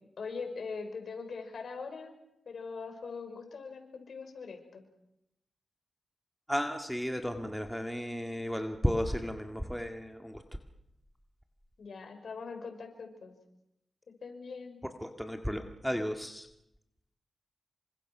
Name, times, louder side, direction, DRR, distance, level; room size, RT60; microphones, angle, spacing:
voice 1, 0.2-2.2 2.5-4.8 11.8-13.3 14.2-14.8, left 4 dB, 70° left, 4 dB, 5.6 m, -42 dB
voice 2, 6.5-10.4 15.0-16.5, equal, ahead, 5 dB, 1.9 m, -33 dB
28.5 x 25.5 x 6.1 m, 0.82 s
cardioid pair, 85°, 0 cm